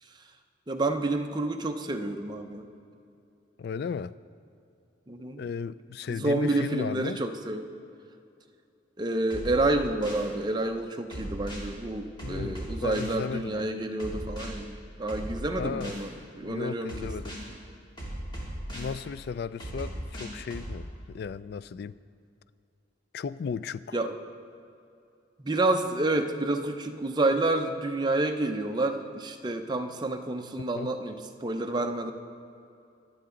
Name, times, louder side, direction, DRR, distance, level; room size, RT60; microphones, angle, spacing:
voice 1, 0.7-2.7 5.1-5.4 6.1-7.7 9.0-16.9 17.2-17.6 23.9-24.2 25.4-32.1, right 2 dB, 25° right, 5 dB, 0.6 m, -29 dB
voice 2, 3.6-4.2 5.4-7.2 12.2-13.7 15.6-15.9 16.4-17.4 18.7-22.0 23.1-24.0 30.7-30.9, left 6 dB, 55° left, 17 dB, 0.3 m, -35 dB
sound 1, 9.3-10.3 11.1-11.7 12.2-13.2 14.0-14.5 15.1-16.0 16.9-17.4 18.0-18.9 19.6-20.7, equal, 25° left, 2.8 m, -37 dB
22.5 x 7.8 x 3.8 m, 2.5 s
head